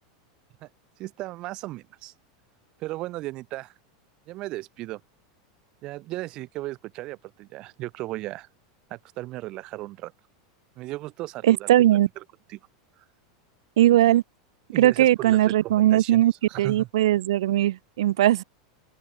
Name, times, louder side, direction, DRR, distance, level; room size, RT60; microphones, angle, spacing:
voice 1, 1.0-2.1 2.8-3.7 4.3-5.0 5.8-8.5 8.9-10.1 10.8-11.7 12.2-12.3 12.5-12.6 13.0-13.1 14.7-16.2 16.5-16.9, right 18 dB, 30° right, 2.0 m, -36 dB
voice 2, 11.4-12.1 13.8-14.2 14.8-16.3 16.6-18.4, right 13 dB, 85° right, 0.5 m, -19 dB
supercardioid pair, 175°, 3 cm